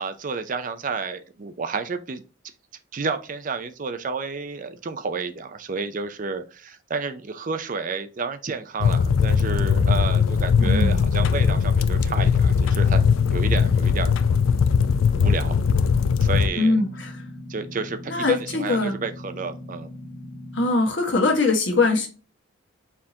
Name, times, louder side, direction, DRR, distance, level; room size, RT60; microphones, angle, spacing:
voice 1, 0.0-2.2 2.9-14.1 15.2-15.6 16.2-16.8 17.5-19.9, right 4 dB, 40° right, 10 dB, 0.5 m, -31 dB
sound 1, 8.8-16.5, left 6 dB, 80° left, 0.4 m, -20 dB
voice 2, 10.6-11.0 16.6-17.2 18.1-18.9 20.5-22.1, left 3 dB, 60° left, 3 dB, 1.3 m, -22 dB
sound 2, 12.7-20.7, left 1 dB, 45° left, 2.0 m, -39 dB
4.4 x 3.6 x 2.7 m, 0.33 s
head